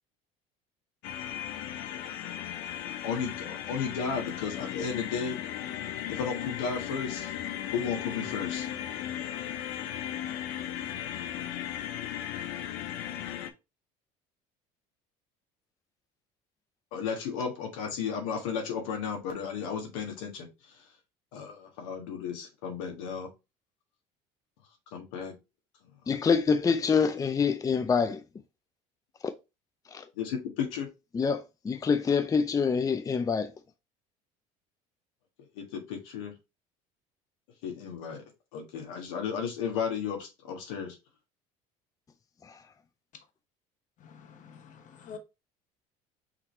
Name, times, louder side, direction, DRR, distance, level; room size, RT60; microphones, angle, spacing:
sound 1, 1.0-13.5, left 11 dB, 75° left, 0.7 m, -36 dB
voice 1, 3.0-5.4 6.1-7.3 7.7-8.7 16.9-20.5 21.3-23.3 24.9-25.3 26.1-26.2 30.2-30.9 35.6-36.3 37.6-38.2 38.5-40.9, left 6 dB, 90° left, 1.5 m, -34 dB
voice 2, 26.1-28.2 29.9-30.0 31.1-33.5 42.5-42.6, left 5 dB, 20° left, 0.5 m, -26 dB
voice 3, 44.0-45.2, left 6 dB, 50° left, 1.1 m, -47 dB
5.9 x 2.8 x 3.1 m
supercardioid pair, 90°, 16 cm